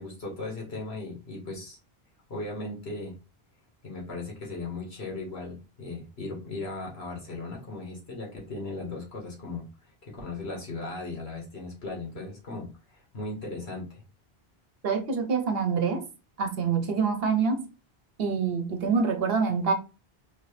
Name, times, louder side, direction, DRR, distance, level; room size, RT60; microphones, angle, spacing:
voice 1, 0.0-1.8 2.3-3.2 3.8-9.7 10.0-14.0, left 2 dB, 85° left, 1.9 m, -37 dB
voice 2, 14.8-16.0 16.4-17.6 18.2-19.7, right 5 dB, 70° right, 1.1 m, -26 dB
4.4 x 3.0 x 3.3 m
omnidirectional pair, 1.0 m